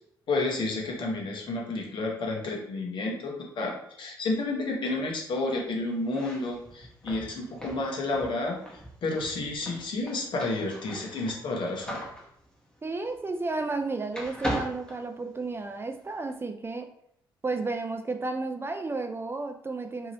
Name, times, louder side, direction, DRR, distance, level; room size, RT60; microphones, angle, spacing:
voice 1, 0.3-8.6 9.0-12.0, left 2 dB, 55° left, 0 dB, 0.9 m, -31 dB
sound 1, 6.0-13.8 14.1-15.7, equal, 10° left, 1.0 m, -39 dB
voice 2, 12.8-16.9 17.4-20.1, right 3 dB, 25° right, 6 dB, 0.4 m, -32 dB
2.8 x 2.5 x 3.0 m, 0.72 s
hypercardioid pair, 50°, 10 cm